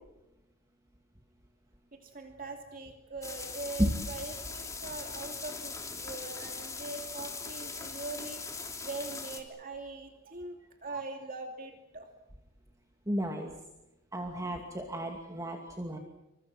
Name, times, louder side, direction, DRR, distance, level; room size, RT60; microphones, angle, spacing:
voice 1, 1.9-8.4 8.8-12.1, right 3 dB, 45° right, 3 dB, 2.7 m, -42 dB
sound 1, 3.2-9.4, left 4 dB, 15° left, 3.3 m, -40 dB
voice 2, 13.1-13.5 14.1-16.0, equal, 15° right, 2 dB, 2.5 m, -32 dB
28.5 x 25.0 x 6.2 m, 0.95 s
head